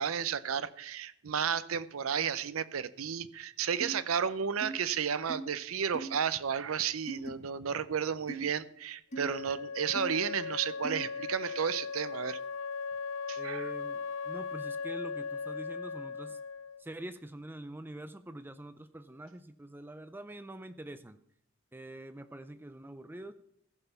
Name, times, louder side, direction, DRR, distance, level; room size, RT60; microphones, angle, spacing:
voice 1, 0.0-12.4 13.3-13.7, right 7 dB, 90° right, 16 dB, 0.6 m, -33 dB
sound 1, 3.8-4.0 4.6-4.7 5.3-5.4 5.9-6.2 7.1-7.3 8.3-8.4 9.1-9.3 9.9-10.1 10.8-11.0, right 2 dB, 35° left, 1.2 m, -39 dB
Wind instrument woodwind instrument, 9.1-16.9, left 5 dB, 85° left, 0.6 m, -38 dB
voice 2, 13.4-16.4 16.8-21.2 21.7-23.3, right 1 dB, 10° right, 11 dB, 0.4 m, -45 dB
15.0 x 5.5 x 5.8 m, 0.72 s
head